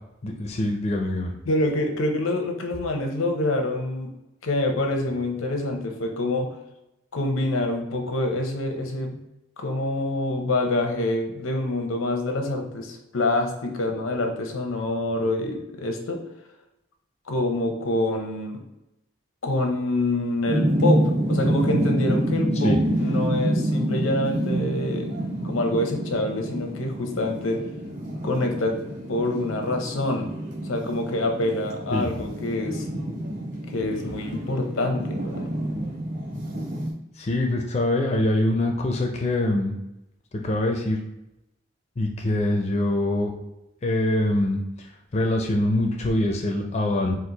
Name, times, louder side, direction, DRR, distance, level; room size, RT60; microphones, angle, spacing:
voice 1, 0.2-1.3 22.6-22.8 31.9-32.1 37.2-39.8 40.4-41.0 42.0-43.3 43.8-47.2, left 1 dB, 35° left, 2 dB, 0.4 m, -24 dB
voice 2, 1.5-4.1 4.4-6.6 7.1-9.2 9.6-16.2 17.3-18.6 19.4-25.1 25.4-27.6 28.2-28.8 29.1-30.3 30.6-32.8 33.7-35.5, left 1 dB, 85° left, 4 dB, 0.8 m, -26 dB
sound 1, 20.5-36.9, right 1 dB, 40° right, 1.0 m, -27 dB
4.4 x 2.5 x 3.9 m, 0.90 s
head